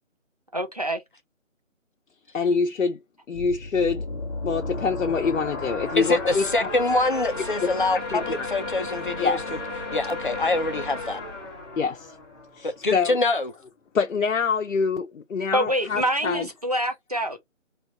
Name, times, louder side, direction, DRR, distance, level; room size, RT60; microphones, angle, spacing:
voice 1, 0.5-1.0 15.5-17.4, equal, 30° right, 0.5 m, -26 dB
voice 2, 2.3-3.0 3.3-4.0 4.4-6.7 7.6-7.7 8.1-8.5 9.2-9.4 11.8-12.1 12.6-13.2 13.9-16.5, left 5 dB, 75° left, 0.7 m, -25 dB
sound 1, 3.3-12.9, left 2 dB, 20° left, 1.4 m, -34 dB
voice 3, 5.9-9.4 9.9-11.2 12.6-13.5, left 2 dB, 40° left, 0.6 m, -25 dB
3.2 x 2.4 x 3.6 m
figure-of-eight pair, 160°, 39 cm